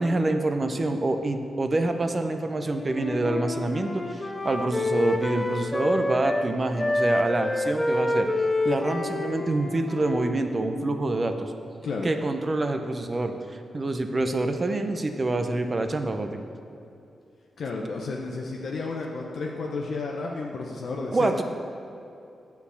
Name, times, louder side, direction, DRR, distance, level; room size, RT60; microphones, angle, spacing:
voice 1, 0.0-8.3 8.6-11.5 12.0-16.4 21.1-21.4, right 2 dB, 30° right, 6 dB, 0.6 m, -26 dB
Wind instrument woodwind instrument, 2.7-6.5 6.8-10.9, left 2 dB, 15° left, 0.5 m, -28 dB
voice 2, 17.6-21.3, left 3 dB, 70° left, -1 dB, 0.8 m, -32 dB
9.1 x 4.7 x 7.0 m, 2.7 s
wide cardioid pair, 115°, 0 cm